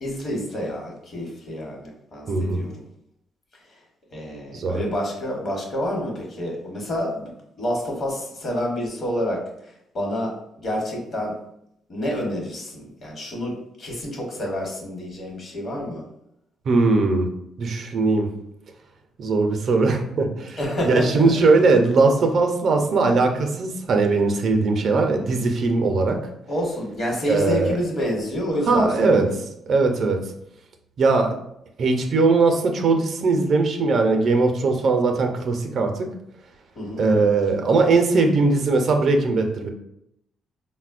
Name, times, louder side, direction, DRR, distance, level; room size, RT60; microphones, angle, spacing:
voice 1, 0.0-2.8 4.1-9.4 9.9-10.3 10.6-11.4 11.9-16.0 20.6-21.4 26.5-29.2 36.7-37.0, equal, 50° left, 0 dB, 1.0 m, -28 dB
voice 2, 2.3-2.6 4.5-4.8 16.7-17.3 17.6-18.3 19.2-26.2 27.3-27.8 28.7-29.2 29.7-30.2 31.0-31.3 31.8-36.1 37.0-39.7, right 3 dB, 60° right, 4 dB, 0.5 m, -20 dB
3.9 x 2.1 x 2.4 m, 0.77 s
cardioid pair, 90°, 0 cm